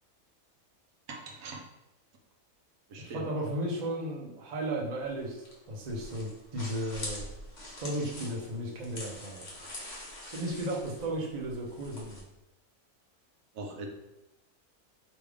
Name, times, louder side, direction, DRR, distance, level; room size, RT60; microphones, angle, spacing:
voice 1, 1.1-1.7 2.9-3.3 13.5-13.9, right 2 dB, 75° right, 2 dB, 1.1 m, -41 dB
voice 2, 3.0-7.3 7.8-9.4 10.3-12.2, right 1 dB, 35° right, -2 dB, 0.9 m, -35 dB
sound 1, 5.0-12.2, left 1 dB, 35° left, 1.2 m, -44 dB
3.4 x 3.0 x 4.8 m, 0.95 s
omnidirectional pair, 1.4 m